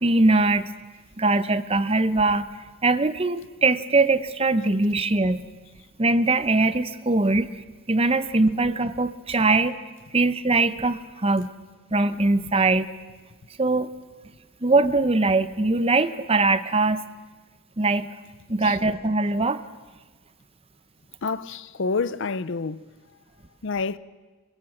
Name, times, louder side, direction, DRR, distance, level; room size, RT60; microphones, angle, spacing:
voice 1, 0.0-0.7 1.2-2.5 2.8-5.5 6.0-7.5 7.9-9.8 10.1-11.5 11.9-12.9 13.6-13.9 14.6-17.0 17.8-18.1 18.5-19.6, right 3 dB, 25° right, 0.8 m, -21 dB
voice 2, 21.2-22.8 23.6-24.0, left 4 dB, 60° left, 0.6 m, -28 dB
23.5 x 21.5 x 7.3 m
head